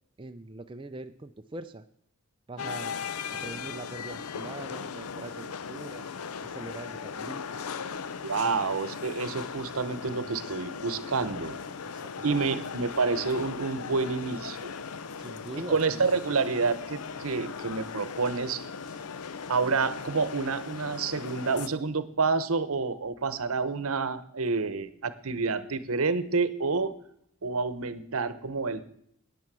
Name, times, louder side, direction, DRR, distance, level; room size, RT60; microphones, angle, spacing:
voice 1, 0.2-1.9 2.5-3.0 3.3-6.1 6.4-7.6 8.4-8.7 11.9-12.6 15.2-16.2, right 2 dB, 20° right, 6 dB, 0.5 m, -42 dB
sound 1, 2.6-21.7, left 6 dB, 80° left, 0.6 m, -38 dB
voice 2, 8.2-11.6 12.2-14.7 15.7-18.6 19.5-26.9 27.4-28.9, right 4 dB, 70° right, 14 dB, 0.9 m, -28 dB
14.5 x 9.6 x 6.1 m, 0.70 s
head